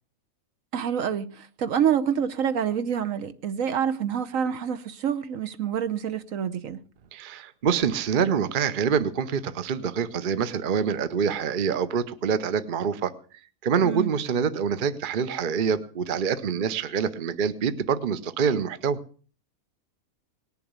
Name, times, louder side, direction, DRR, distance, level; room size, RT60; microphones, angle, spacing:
voice 1, 0.7-6.8 13.8-14.1, right 8 dB, 65° right, 1.2 m, -27 dB
voice 2, 7.1-13.1 13.6-19.0, right 6 dB, 45° right, 0.8 m, -26 dB
19.0 x 7.1 x 8.1 m
omnidirectional pair, 1.5 m